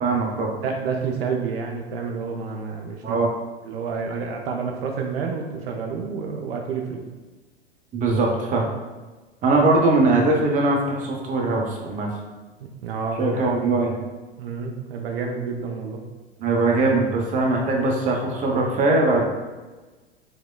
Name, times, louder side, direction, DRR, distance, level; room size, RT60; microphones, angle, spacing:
voice 1, 0.0-0.5 3.0-3.3 7.9-8.6 9.4-12.1 13.2-14.0 16.4-19.2, right 2 dB, 25° right, -1 dB, 0.6 m, -21 dB
voice 2, 0.6-3.2 3.6-7.1 12.6-13.6 14.4-16.0, right 5 dB, 65° right, 2 dB, 0.5 m, -29 dB
4.2 x 2.2 x 2.2 m, 1.2 s
figure-of-eight pair, 90°, 32 cm